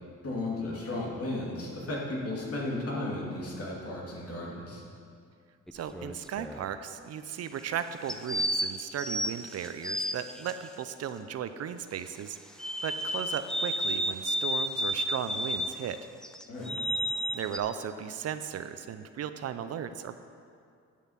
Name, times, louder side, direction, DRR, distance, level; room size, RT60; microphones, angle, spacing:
voice 1, 0.2-4.8 16.5-16.7, left 2 dB, 50° left, -3 dB, 2.7 m, -34 dB
sound 1, 5.7-6.6 8.1-10.5 12.6-15.8 16.2-17.6, equal, ahead, 0.5 m, -32 dB
voice 2, 5.7-12.4 12.8-16.0 17.3-20.1, right 8 dB, 55° right, 10 dB, 0.5 m, -36 dB
9.3 x 7.1 x 5.8 m, 2.3 s
cardioid pair, 90°, 30 cm